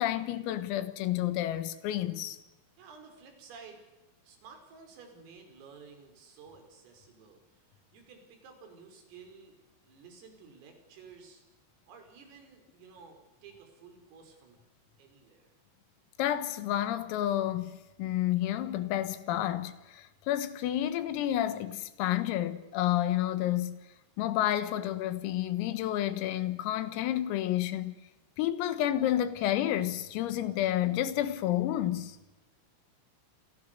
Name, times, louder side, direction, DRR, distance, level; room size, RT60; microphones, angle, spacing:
voice 1, 0.0-2.4 16.2-23.8 24.2-27.9 28.4-32.2, left 12 dB, 85° left, 4.2 m, -30 dB
voice 2, 2.8-3.8 4.2-9.6 9.8-11.4 11.9-14.6 15.0-15.5, right 5 dB, 80° right, 7.6 m, -53 dB
28.0 x 28.0 x 6.7 m
omnidirectional pair, 5.9 m